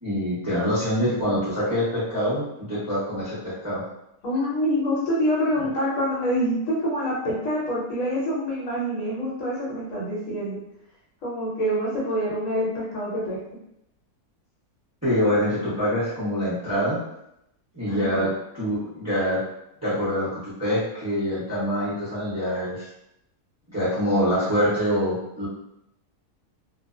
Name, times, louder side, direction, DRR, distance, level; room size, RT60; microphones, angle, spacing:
voice 1, 0.0-3.8 15.0-17.0 17.7-19.4 19.8-22.9 23.7-25.5, equal, 15° right, -11 dB, 0.7 m, -25 dB
voice 2, 4.2-10.6 11.2-13.4 17.9-18.3, equal, 60° left, -6 dB, 1.2 m, -26 dB
2.7 x 2.0 x 2.4 m, 0.82 s
omnidirectional pair, 1.7 m